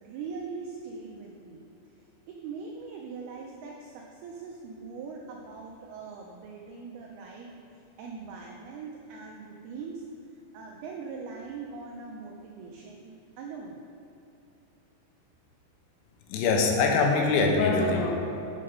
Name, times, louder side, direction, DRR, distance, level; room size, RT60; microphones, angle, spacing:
voice 1, 0.0-1.6 2.3-10.0 10.5-13.8, right 5 dB, 85° right, 0 dB, 2.2 m, -41 dB
voice 2, 16.3-18.2, left 4 dB, 90° left, 1 dB, 3.5 m, -23 dB
7.8 x 6.6 x 5.4 m, 2.9 s
omnidirectional pair, 5.3 m